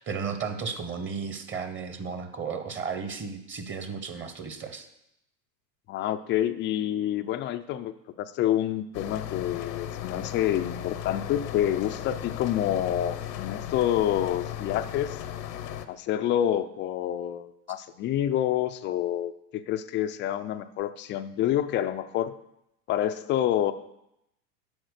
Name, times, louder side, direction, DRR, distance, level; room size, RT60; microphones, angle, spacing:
voice 1, 0.0-4.9, right 5 dB, 25° right, 7 dB, 1.1 m, -34 dB
voice 2, 5.9-15.2 15.9-22.3 22.9-23.7, left 11 dB, 25° left, 10 dB, 0.4 m, -28 dB
sound 1, 8.9-15.9, left 11 dB, 80° left, 0.9 m, -36 dB
10.5 x 4.6 x 6.5 m, 0.83 s
hypercardioid pair, 95°, 50 cm